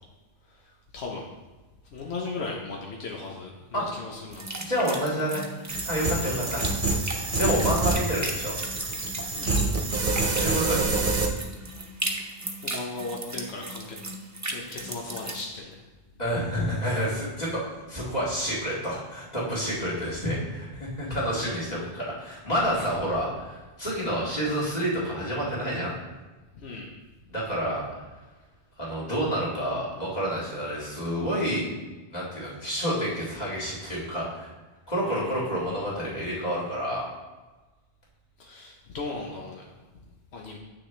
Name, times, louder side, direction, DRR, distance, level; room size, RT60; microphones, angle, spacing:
voice 1, 0.5-1.3 1.9-4.5 6.2-6.4 9.4-9.7 10.9-11.0 12.1-12.3 12.6-14.0 14.4-15.8 19.8-20.1 21.1-21.2 26.5-26.9 35.0-35.5 38.4-39.8 40.3-40.6, left 3 dB, 80° left, -1 dB, 1.1 m, -37 dB
sound 1, 4.3-15.4, right 1 dB, 20° right, 0.7 m, -36 dB
voice 2, 4.6-5.4 5.8-6.7 7.1-8.5 10.4-10.8 16.2-17.6 17.9-25.9 27.3-27.9 28.8-31.7 32.1-34.5 34.9-37.1, equal, 40° left, -7 dB, 2.3 m, -29 dB
sound 2, 5.7-11.3, right 3 dB, 55° right, 1.0 m, -27 dB
7.9 x 6.4 x 3.2 m, 1.2 s
omnidirectional pair, 1.1 m